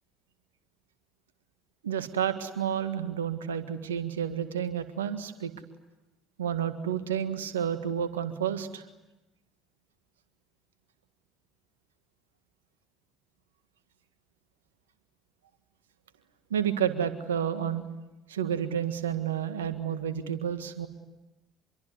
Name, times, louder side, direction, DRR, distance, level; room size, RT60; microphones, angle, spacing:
voice 1, 1.8-5.5 6.4-8.8 16.5-17.8 18.3-20.9, right 9 dB, 80° right, 11 dB, 1.7 m, -30 dB
26.0 x 23.0 x 9.5 m, 1.0 s
figure-of-eight pair, 55°, 0 cm